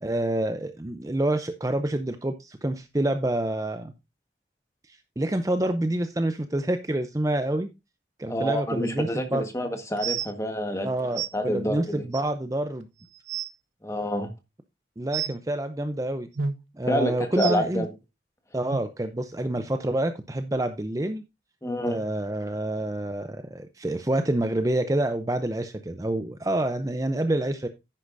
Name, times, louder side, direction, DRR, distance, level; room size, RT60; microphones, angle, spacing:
voice 1, 0.0-3.9 4.9-7.7 8.2-9.4 10.8-12.9 15.0-16.3 16.8-17.9 18.5-21.2 21.9-27.7, right 1 dB, 20° right, 0.5 m, -27 dB
voice 2, 8.3-12.1 13.8-14.3 16.9-17.9 21.6-22.0, equal, 15° left, 1.4 m, -28 dB
sound 1, 10.0-10.3 11.1-11.3 12.1-12.2 12.8-12.9 13.1-13.5 15.1-15.3 16.3-16.6 17.4-17.5 18.7-18.8 19.5-19.6 20.3-20.4, right 7 dB, 85° right, 1.0 m, -30 dB
10.0 x 9.7 x 2.6 m
head